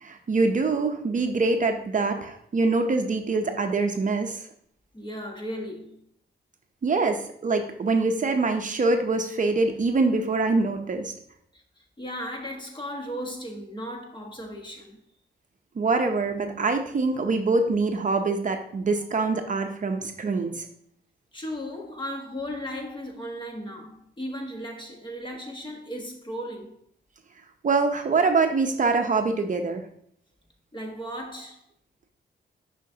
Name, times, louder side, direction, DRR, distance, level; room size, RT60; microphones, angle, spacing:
voice 1, 0.0-4.4 6.8-11.1 15.8-20.7 27.6-29.8, right 3 dB, 45° right, 0.6 m, -24 dB
voice 2, 4.9-6.0 11.5-15.0 17.1-17.3 21.3-26.7 30.7-31.6, equal, 25° left, 1.4 m, -36 dB
6.2 x 5.8 x 2.8 m
cardioid pair, 85°, 19 cm